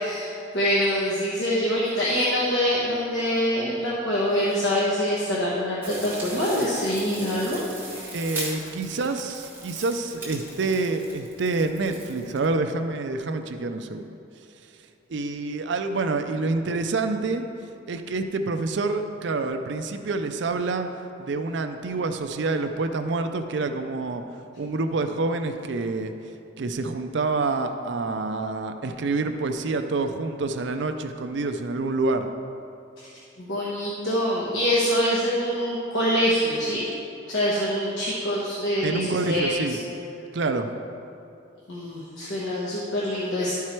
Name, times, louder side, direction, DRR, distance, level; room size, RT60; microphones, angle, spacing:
voice 1, 0.0-8.2 33.0-33.1 33.4-36.8 37.3-39.8 41.7-43.5, equal, 65° left, -6 dB, 1.1 m, -25 dB
sound 1, 5.8-12.4, right 2 dB, 10° right, 1.4 m, -38 dB
voice 2, 8.1-14.1 15.1-17.4 17.9-20.9 21.2-24.2 24.6-26.1 26.6-32.3 38.8-39.8 40.3-40.7, right 3 dB, 60° right, 7 dB, 0.4 m, -27 dB
11.5 x 4.7 x 4.4 m, 2.7 s
head